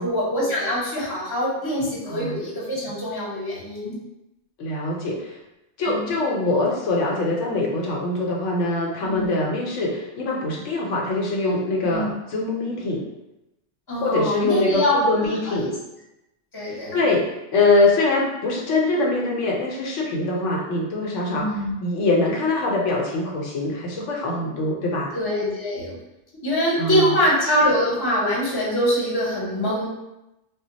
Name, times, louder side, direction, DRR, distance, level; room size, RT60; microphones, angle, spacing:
voice 1, 0.0-4.0 5.9-6.1 9.0-9.3 11.8-12.1 13.9-15.7 16.5-17.0 21.3-21.7 25.1-25.9 26.4-29.9, equal, 20° left, -6 dB, 0.8 m, -24 dB
voice 2, 4.6-5.4 5.8-13.1 14.0-15.7 16.7-21.5 21.8-25.1 26.7-27.1, left 2 dB, 75° left, -2 dB, 0.9 m, -23 dB
2.2 x 2.0 x 3.8 m, 0.92 s
omnidirectional pair, 1.3 m